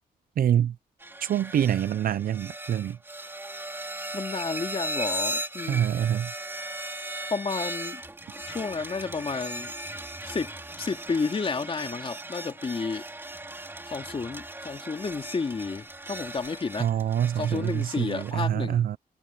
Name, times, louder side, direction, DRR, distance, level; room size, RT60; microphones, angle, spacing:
voice 1, 0.4-0.7 1.2-3.0 5.7-6.3 16.8-19.0, right 10 dB, 65° right, 0.7 m, -25 dB
sound 1, 1.0-18.3, right 1 dB, 15° right, 3.2 m, -37 dB
voice 2, 4.1-5.9 7.3-8.0 8.5-9.7 10.2-10.5 10.8-13.1 13.8-17.1 17.3-18.9, left 4 dB, 35° left, 3.3 m, -31 dB
cardioid pair, 110°, 16 cm